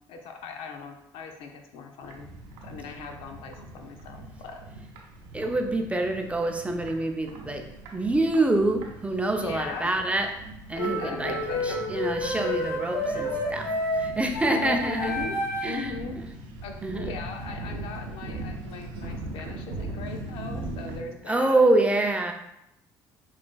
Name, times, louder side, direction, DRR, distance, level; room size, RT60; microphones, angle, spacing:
voice 1, 0.1-2.3 2.6-4.6 9.4-9.9 10.7-11.8 14.4-15.4 15.6-16.2 16.6-21.6, left 5 dB, 70° left, 4 dB, 0.5 m, -38 dB
sound 1, 2.0-21.0, right 2 dB, 80° right, 0.6 m, -40 dB
voice 2, 5.3-7.6 7.9-10.3 10.7-11.3 11.6-13.7 13.9-15.1 15.6-16.3 16.8-17.1 21.3-22.3, right 2 dB, 15° right, 4 dB, 0.5 m, -26 dB
sound 2, 10.8-15.9, left 1 dB, 90° left, 1.1 m, -30 dB
5.8 x 2.4 x 2.2 m, 0.83 s
supercardioid pair, 70°, 10 cm